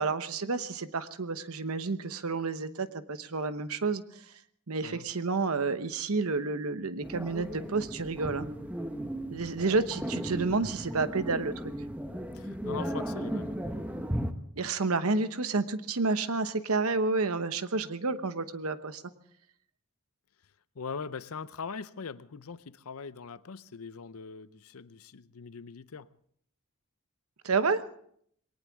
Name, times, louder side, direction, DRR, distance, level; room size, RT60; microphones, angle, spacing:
voice 1, 0.0-4.2 4.7-8.5 9.3-11.7 14.6-19.0 27.4-27.8, right 3 dB, 80° right, 1.0 m, -30 dB
sound 1, 7.0-14.3, equal, 5° right, 0.9 m, -36 dB
voice 2, 12.3-13.6 20.7-26.1, left 5 dB, 80° left, 0.6 m, -41 dB
21.5 x 18.5 x 3.6 m
head